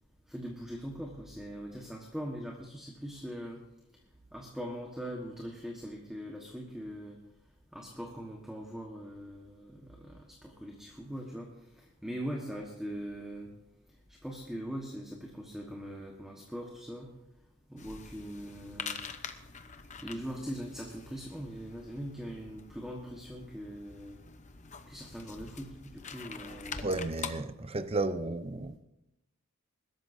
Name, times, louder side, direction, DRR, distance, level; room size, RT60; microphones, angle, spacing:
voice 1, 0.3-3.6 4.3-7.2 7.7-11.5 11.8-13.5 14.1-17.1 17.7-19.0 20.0-24.2 24.9-26.9, equal, ahead, 1.3 m, -41 dB
sound 1, 17.8-27.3, left 6 dB, 35° left, 0.8 m, -45 dB
voice 2, 26.8-28.8, right 2 dB, 25° right, 0.6 m, -33 dB
21.5 x 13.0 x 2.7 m
head